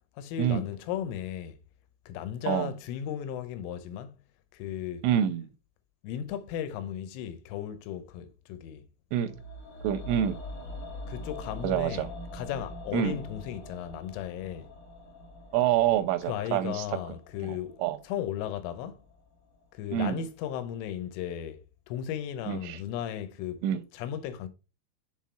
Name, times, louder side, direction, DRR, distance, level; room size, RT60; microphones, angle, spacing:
voice 1, 0.1-1.6 2.1-4.2 4.5-5.1 6.0-8.9 11.1-14.7 16.3-17.8 18.0-19.0 19.7-23.6 23.9-24.5, left 10 dB, 85° left, 3.3 m, -36 dB
voice 2, 5.0-5.5 9.1-9.4 9.8-10.3 11.6-12.1 12.9-13.2 15.5-16.8 17.4-17.5 17.8-18.0 19.9-20.2 22.5-22.8 23.6-23.8, right 10 dB, 90° right, 3.1 m, -26 dB
sound 1, 9.2-19.3 19.6-19.7, left 1 dB, 50° left, 2.5 m, -44 dB
7.3 x 3.8 x 4.3 m
omnidirectional pair, 5.6 m